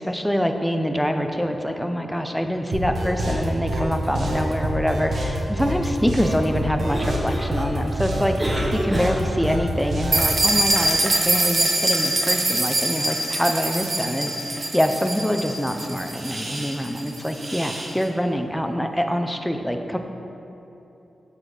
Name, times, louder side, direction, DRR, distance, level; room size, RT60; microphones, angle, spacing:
voice 1, 0.0-20.0, equal, 5° left, 5 dB, 0.5 m, -25 dB
sound 1, 2.7-10.3, equal, 65° right, 1.1 m, -26 dB
Cough, 6.7-9.6, equal, 20° right, 1.0 m, -30 dB
sound 2, 10.1-17.9, right 2 dB, 40° right, 1.1 m, -24 dB
7.4 x 4.2 x 4.9 m, 2.9 s
cardioid pair, 55°, 0 cm